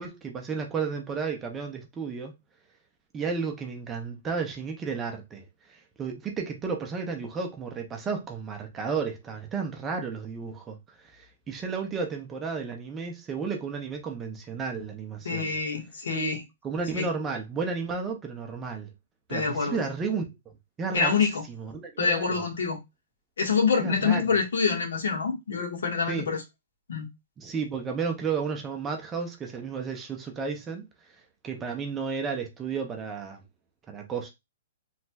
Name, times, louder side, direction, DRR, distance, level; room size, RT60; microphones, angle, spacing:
voice 1, 0.0-2.3 3.1-10.8 11.1-15.5 16.6-18.9 19.3-20.2 20.8-21.2 21.6-22.4 23.8-24.2 26.1-26.3 27.4-30.8 31.4-33.4 33.9-34.3, right 5 dB, 10° right, 0.4 m, -32 dB
voice 2, 15.2-16.4 16.9-17.1 19.3-19.8 20.9-21.4 22.0-22.8 23.4-26.4 26.9-27.1, left 5 dB, 90° left, 1.3 m, -26 dB
3.1 x 2.8 x 2.2 m
hypercardioid pair, 175°, 0 cm